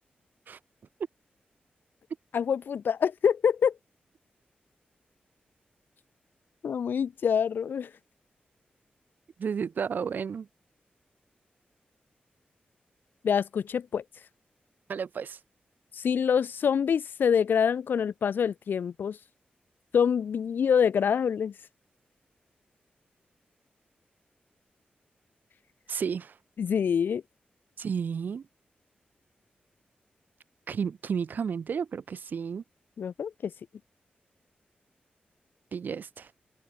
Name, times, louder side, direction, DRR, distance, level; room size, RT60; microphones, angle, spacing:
voice 1, 2.3-3.8 6.6-7.9 13.2-14.0 15.9-19.2 19.9-21.5 26.6-27.2 33.0-33.5, left 7 dB, 80° left, 0.7 m, -26 dB
voice 2, 9.4-10.5 14.9-15.4 25.9-26.4 27.8-28.4 30.7-32.6 35.7-36.3, right 6 dB, 65° right, 0.7 m, -32 dB
wide cardioid pair, 150°, 3 cm